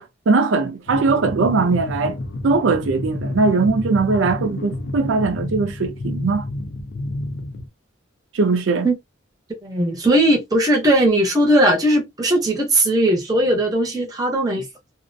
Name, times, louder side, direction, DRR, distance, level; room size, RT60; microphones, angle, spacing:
voice 1, 0.0-2.2 2.4-6.4 8.3-8.9, right 4 dB, 75° right, 0.4 m, -20 dB
sound 1, 0.9-7.7, left 1 dB, 60° left, 0.5 m, -29 dB
voice 2, 9.6-14.7, right 1 dB, 20° right, 0.6 m, -18 dB
2.4 x 2.1 x 2.5 m
head